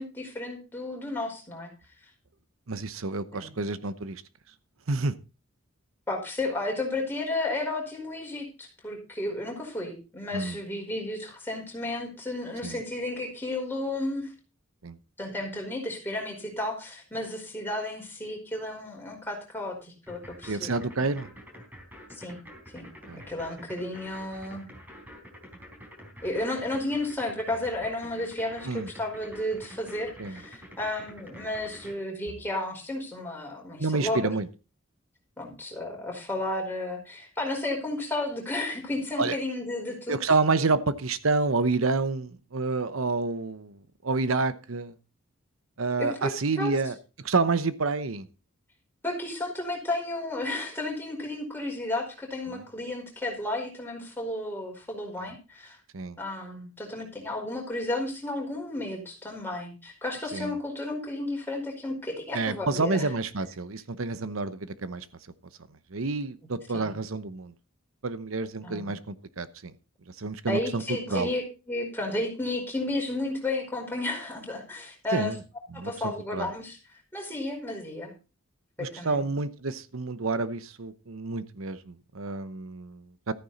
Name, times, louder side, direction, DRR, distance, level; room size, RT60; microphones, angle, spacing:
voice 1, 0.0-1.7 3.3-3.5 6.1-14.3 15.2-20.7 22.1-22.4 22.7-24.6 26.2-34.3 35.4-40.2 46.0-46.7 49.0-55.8 56.2-63.1 66.7-66.9 68.6-68.9 70.5-75.3 75.7-78.1 78.8-79.3, left 2 dB, 10° left, 0 dB, 4.8 m, -33 dB
voice 2, 2.7-4.2 4.9-5.1 10.3-10.6 12.6-12.8 14.8-15.0 20.5-21.3 23.1-23.2 28.6-28.9 30.2-30.4 33.8-34.5 39.2-39.4 40.1-44.9 45.8-48.3 52.5-52.6 55.9-56.2 60.3-60.5 62.3-65.1 65.9-67.5 68.0-69.7 70.1-71.3 75.1-75.4 75.7-76.5 78.8-83.3, right 3 dB, 75° right, 14 dB, 0.9 m, -29 dB
sound 1, 20.1-31.9, equal, 10° right, 4.1 m, -47 dB
14.0 x 9.7 x 4.1 m, 0.31 s
head